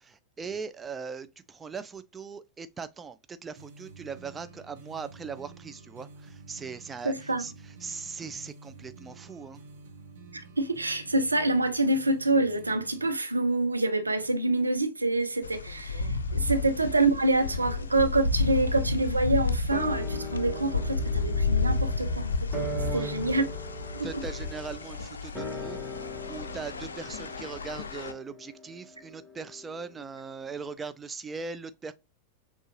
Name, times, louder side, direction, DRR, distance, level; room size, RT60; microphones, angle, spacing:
voice 1, 0.0-9.6 16.4-16.6 22.7-23.2 24.0-25.8 26.3-31.9, right 5 dB, 15° right, 0.5 m, -40 dB
sound 1, 3.6-13.1, right 3 dB, 60° right, 1.0 m, -49 dB
voice 2, 7.0-7.4 10.3-22.6 22.9-23.4 23.9-24.2, right 2 dB, 80° right, 0.6 m, -27 dB
sound 2, 15.4-28.1, left 3 dB, 70° left, 0.5 m, -31 dB
sound 3, 19.7-30.3 30.6-30.7, left 1 dB, 15° left, 1.4 m, -40 dB
6.3 x 2.4 x 2.8 m
figure-of-eight pair, 90°, 0 cm